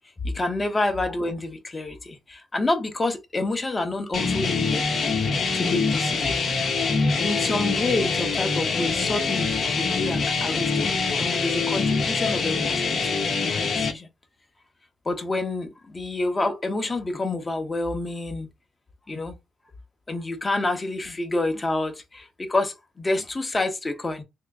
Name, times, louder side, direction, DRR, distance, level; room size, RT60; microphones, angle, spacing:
voice 1, 0.2-4.9 5.5-6.4 7.2-14.1 15.0-18.5 19.1-19.4 20.1-24.2, left 2 dB, 25° left, 1.0 m, -28 dB
sound 1, 4.1-13.9, left 4 dB, 55° left, 1.0 m, -24 dB
3.2 x 2.9 x 3.6 m
cardioid pair, 90°, 0 cm